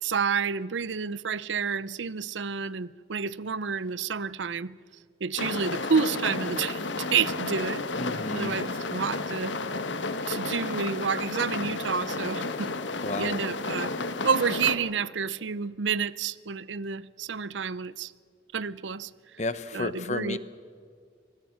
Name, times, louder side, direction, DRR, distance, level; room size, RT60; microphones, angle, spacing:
voice 1, 0.0-4.7 5.2-7.9 8.3-9.6 10.3-12.7 13.2-13.9 14.2-18.1 18.5-19.1 19.7-20.4, right 6 dB, 85° right, 0.6 m, -29 dB
sound 1, 5.4-14.8, left 3 dB, 85° left, 1.3 m, -32 dB
voice 2, 8.0-8.6 13.0-13.3 19.4-20.4, left 2 dB, 40° left, 0.9 m, -32 dB
25.5 x 20.5 x 6.0 m
head